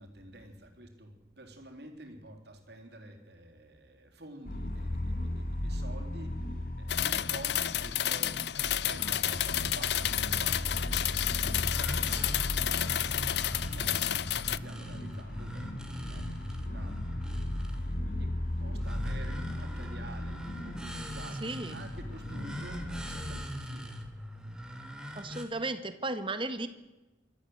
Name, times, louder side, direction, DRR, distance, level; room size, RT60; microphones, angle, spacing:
voice 1, 0.0-24.0, right 1 dB, 65° right, 4 dB, 3.8 m, -49 dB
sound 1, 4.5-23.4, left 1 dB, 50° left, 1.9 m, -37 dB
sound 2, 6.9-14.6, left 12 dB, 65° left, 0.6 m, -31 dB
sound 3, 8.8-25.4, equal, 5° right, 2.3 m, -42 dB
voice 2, 21.4-21.7 25.1-26.7, right 2 dB, 30° right, 10 dB, 1.6 m, -34 dB
25.0 x 13.5 x 8.0 m, 1.1 s
head